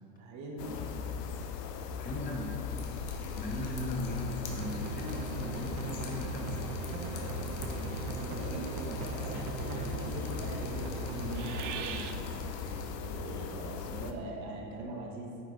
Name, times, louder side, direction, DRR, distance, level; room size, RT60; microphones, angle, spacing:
voice 1, 0.2-1.1 7.4-12.6 13.0-15.4, right 1 dB, 35° right, -1 dB, 1.0 m, -42 dB
sound 1, 0.6-14.1, left 6 dB, 75° left, 0.7 m, -39 dB
voice 2, 2.0-2.7 3.4-6.6, left 2 dB, 20° left, 1 dB, 0.7 m, -38 dB
Drip, 2.7-12.9, left 3 dB, 60° left, 1.1 m, -44 dB
sound 2, 4.4-12.1, right 5 dB, 55° right, 0.6 m, -39 dB
9.5 x 3.8 x 3.0 m, 2.6 s
hypercardioid pair, 110°, 49 cm